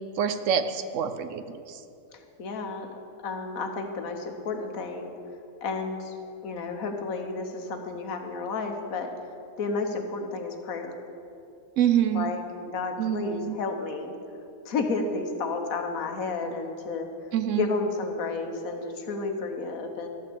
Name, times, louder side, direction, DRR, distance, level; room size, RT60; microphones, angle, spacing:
voice 1, 0.2-1.6 11.8-12.3 13.0-13.6 17.3-17.7, right 9 dB, 70° right, 10 dB, 0.9 m, -26 dB
voice 2, 2.1-2.9 3.2-5.1 5.6-6.1 6.4-9.3 9.6-11.0 12.1-14.1 14.6-17.1 17.6-20.1, left 3 dB, 80° left, 5 dB, 1.5 m, -31 dB
12.5 x 6.1 x 8.4 m, 2.6 s
omnidirectional pair, 1.5 m